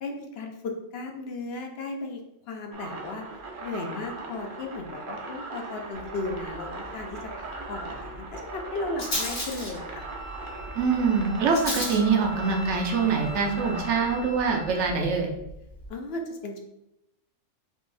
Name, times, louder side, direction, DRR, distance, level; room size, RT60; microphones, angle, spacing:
voice 1, 0.0-2.2 2.5-3.2 3.6-10.1 15.9-16.6, left 2 dB, 60° left, 3 dB, 0.8 m, -35 dB
sound 1, 2.7-14.2, right 3 dB, 50° right, 0.7 m, -39 dB
Rattle, 5.9-15.9, left 1 dB, 75° left, 2.1 m, -38 dB
Wind instrument woodwind instrument, 10.0-15.1, equal, ahead, 0.6 m, -43 dB
voice 2, 10.7-15.3, right 5 dB, 65° right, 2 dB, 1.0 m, -24 dB
5.2 x 2.5 x 3.3 m, 0.84 s
omnidirectional pair, 1.3 m